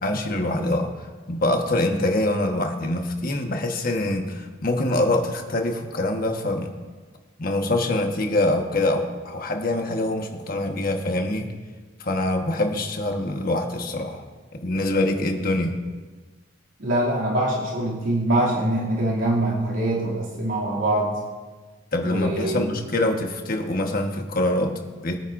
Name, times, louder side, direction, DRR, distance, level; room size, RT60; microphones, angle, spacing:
voice 1, 0.0-6.7 7.4-11.5 12.0-14.3 14.5-15.7 21.9-25.2, left 1 dB, 45° left, 3 dB, 1.3 m, -24 dB
voice 2, 16.8-21.2 22.0-22.7, right 1 dB, 85° right, -6 dB, 2.6 m, -24 dB
22.5 x 9.4 x 2.6 m, 1.4 s
head